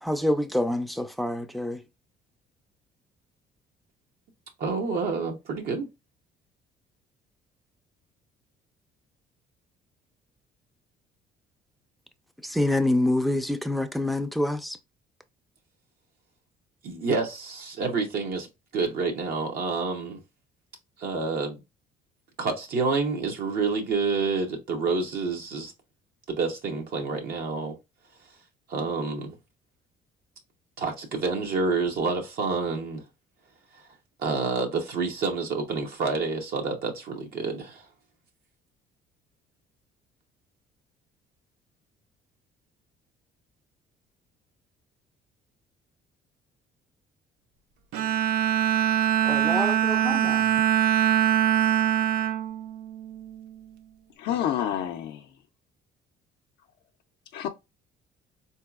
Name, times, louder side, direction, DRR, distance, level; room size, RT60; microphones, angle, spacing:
voice 1, 0.0-1.8 12.4-14.8 49.2-50.5, left 1 dB, ahead, 0.4 m, -26 dB
voice 2, 4.6-5.9 16.8-18.5 18.7-20.2 21.0-21.6 22.4-25.7 26.3-27.8 28.7-29.4 30.8-33.0 33.7-33.9 34.2-37.9, right 4 dB, 65° right, 0.8 m, -28 dB
Bowed string instrument, 47.9-53.4, right 11 dB, 90° right, 0.4 m, -23 dB
voice 3, 54.2-55.3 57.3-57.5, left 10 dB, 80° left, 0.4 m, -28 dB
3.8 x 2.8 x 2.3 m
cardioid pair, 110°, 17 cm